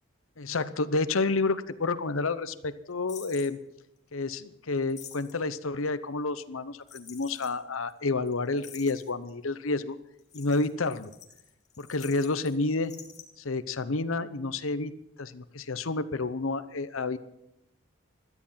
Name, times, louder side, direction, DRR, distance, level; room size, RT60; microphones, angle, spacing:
voice 1, 0.4-3.6 4.1-10.0 10.3-11.1 11.8-12.9 13.4-14.9 15.2-17.2, left 3 dB, 90° left, 14 dB, 0.9 m, -30 dB
sound 1, 3.1-3.5 4.8-5.5 6.9-7.5 7.9-8.0 8.3-8.4 8.6-9.3 10.2-12.5 12.8-13.2, left 9 dB, 35° left, 2.2 m, -48 dB
17.5 x 13.0 x 5.8 m, 0.83 s
head